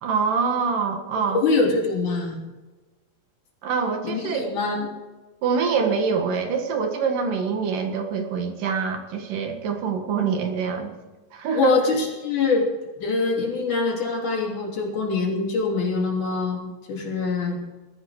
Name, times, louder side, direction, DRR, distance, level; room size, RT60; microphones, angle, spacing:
voice 1, 0.0-1.4 3.6-4.5 5.4-10.9 11.3-11.7, right 5 dB, 65° right, 4 dB, 3.1 m, -25 dB
voice 2, 1.3-2.4 4.0-4.9 11.5-12.7 13.0-17.6, left 4 dB, 55° left, -1 dB, 4.6 m, -24 dB
20.5 x 13.5 x 4.9 m, 1.2 s
omnidirectional pair, 4.3 m